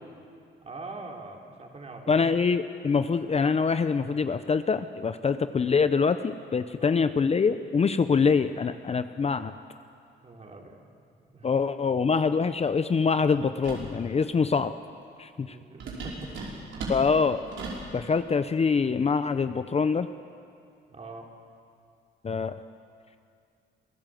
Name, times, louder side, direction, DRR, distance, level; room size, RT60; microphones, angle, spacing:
voice 1, 0.6-2.3 6.8-7.0 10.2-10.9 11.2-11.5 15.4-16.3 20.9-21.3, right 3 dB, 35° right, 1 dB, 3.7 m, -43 dB
voice 2, 2.1-9.5 11.4-14.7 15.2-15.6 16.9-17.4 17.9-20.1 22.2-22.5, left 5 dB, 30° left, 10 dB, 0.7 m, -24 dB
sound 1, 13.6-13.9 15.8-17.9, right 3 dB, 75° right, 5.4 m, -36 dB
26.5 x 16.0 x 7.8 m, 2.3 s
cardioid pair, 90°, 20 cm